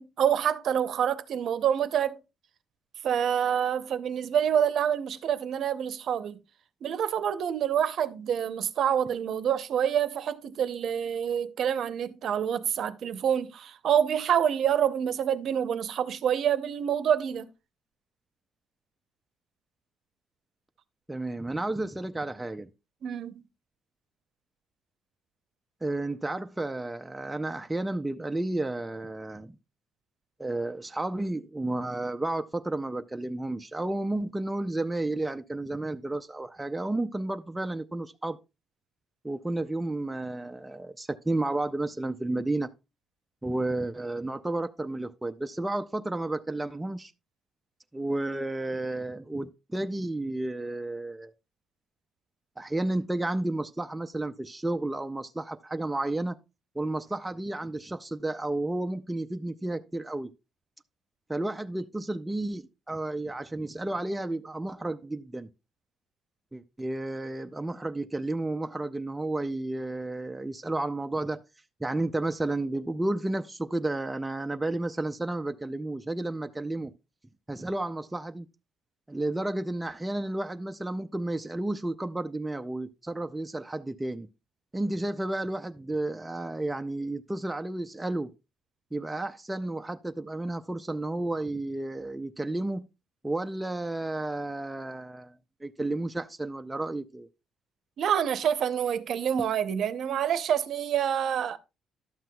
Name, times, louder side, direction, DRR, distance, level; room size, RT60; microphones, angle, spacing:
voice 1, 0.0-2.2 3.0-6.4 6.8-17.5 23.0-23.4 98.0-101.6, right 9 dB, 55° right, 0.6 m, -27 dB
voice 2, 21.1-22.7 25.8-29.6 30.4-38.4 39.2-42.7 43.4-47.1 47.9-51.3 52.6-56.4 56.8-60.3 61.3-65.5 66.5-71.4 71.8-76.9 77.5-78.5 79.1-84.3 84.7-88.3 88.9-92.9 93.2-95.3 95.6-97.3, right 2 dB, 10° right, 0.4 m, -32 dB
12.0 x 7.6 x 2.3 m
cardioid pair, 155°, 0 cm